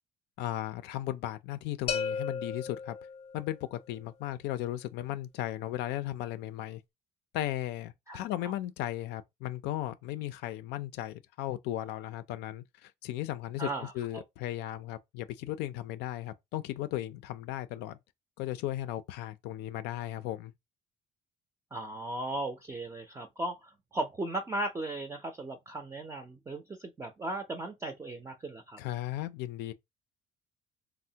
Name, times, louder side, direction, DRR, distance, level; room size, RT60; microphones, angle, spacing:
voice 1, 0.4-3.0 3.3-6.8 7.3-13.7 13.9-18.0 18.4-20.5 28.8-29.7, left 14 dB, 90° left, 0.4 m, -36 dB
sound 1, 1.9-3.7, left 6 dB, 35° left, 0.5 m, -35 dB
voice 2, 8.1-8.5 13.6-14.2 21.7-28.8, right 2 dB, 15° right, 0.4 m, -37 dB
3.4 x 2.0 x 2.7 m
cardioid pair, 110°, 17 cm